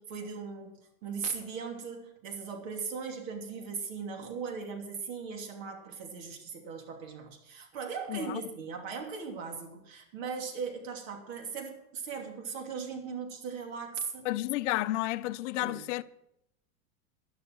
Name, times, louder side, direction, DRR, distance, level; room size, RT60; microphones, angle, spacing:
voice 1, 0.0-14.3 15.6-15.8, right 5 dB, 65° right, 3.0 m, -38 dB
voice 2, 8.1-8.4 14.2-16.0, left 17 dB, 55° left, 0.6 m, -31 dB
11.5 x 10.5 x 6.2 m
supercardioid pair, 145°, 43 cm